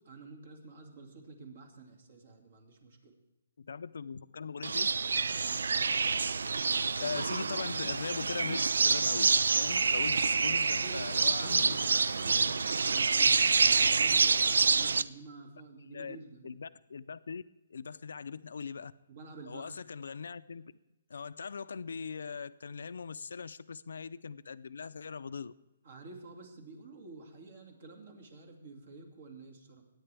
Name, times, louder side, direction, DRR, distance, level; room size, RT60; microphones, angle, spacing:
voice 1, 0.0-3.2 5.4-5.7 10.8-16.5 19.1-19.8 25.1-25.2 25.8-29.8, right 3 dB, 50° right, 3 dB, 2.4 m, -49 dB
voice 2, 3.6-5.0 7.0-12.0 15.8-16.2 16.4-17.4 17.7-18.9 19.5-20.7 21.1-25.5, left 5 dB, 70° left, 14 dB, 0.5 m, -40 dB
sound 1, 4.6-15.0, right 4 dB, 85° right, 0.4 m, -27 dB
22.0 x 9.8 x 3.5 m, 1.0 s
hypercardioid pair, 170°, 0 cm